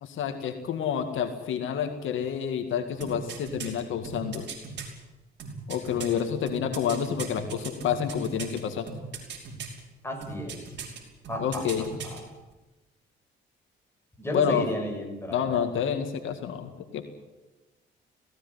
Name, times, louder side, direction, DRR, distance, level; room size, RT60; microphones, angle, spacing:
voice 1, 0.0-4.5 5.7-8.9 11.4-11.8 14.3-14.7 15.3-17.1, left 8 dB, 80° left, 7 dB, 2.1 m, -29 dB
sound 1, 3.0-4.9 5.4-8.6 8.9-9.8 10.2-11.0 11.2-12.2 12.5-12.6, right 6 dB, 65° right, 5.5 m, -38 dB
voice 2, 10.0-10.6 11.3-12.3 14.2-15.6, left 1 dB, 10° left, 2 dB, 7.1 m, -34 dB
18.0 x 17.5 x 10.0 m, 1.1 s
cardioid pair, 90°, 20 cm